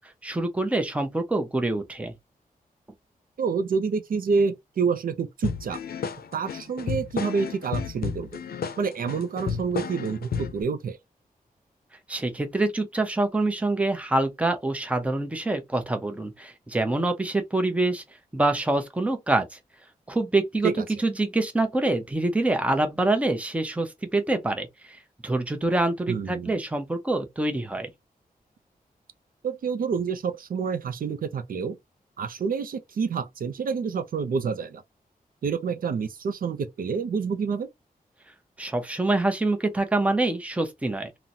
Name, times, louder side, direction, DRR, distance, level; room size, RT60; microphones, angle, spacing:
voice 1, 0.2-2.1 12.1-18.0 18.3-19.6 20.1-20.7 21.0-27.9 38.6-41.1, right 2 dB, 10° right, 0.6 m, -25 dB
voice 2, 3.4-5.8 6.3-8.4 8.8-11.0 20.6-20.8 26.1-26.6 29.4-31.8 32.2-34.8 35.4-37.7, right 5 dB, 70° right, 0.5 m, -28 dB
sound 1, 5.4-10.6, left 6 dB, 80° left, 0.5 m, -32 dB
3.8 x 2.0 x 2.7 m
wide cardioid pair, 145°, 15 cm